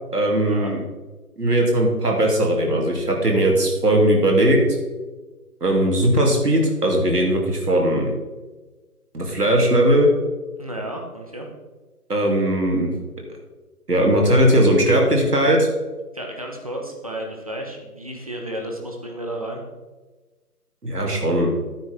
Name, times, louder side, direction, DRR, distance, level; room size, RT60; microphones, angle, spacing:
voice 1, 0.1-0.8 1.4-4.6 5.6-8.1 9.1-10.1 12.1-12.9 13.9-15.7 20.8-21.5, right 1 dB, 80° right, 0 dB, 3.3 m, -18 dB
voice 2, 10.6-11.5 16.1-19.6, right 1 dB, 25° right, 1 dB, 1.0 m, -32 dB
12.0 x 9.3 x 3.7 m, 1.2 s
figure-of-eight pair, 165°, 46 cm